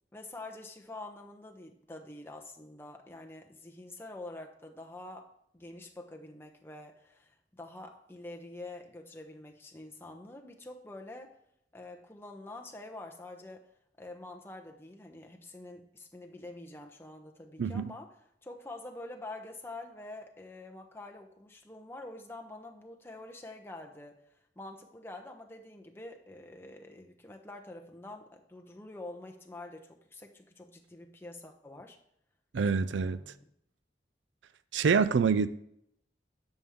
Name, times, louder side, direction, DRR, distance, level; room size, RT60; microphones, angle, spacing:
voice 1, 0.1-11.3 11.7-13.7 14.0-18.1 18.4-24.2 24.6-32.0 32.8-33.5, left 2 dB, 15° left, 0.9 m, -46 dB
voice 2, 17.6-17.9 32.5-33.2 34.7-35.5, right 5 dB, 85° right, 0.4 m, -26 dB
10.5 x 7.1 x 3.7 m
head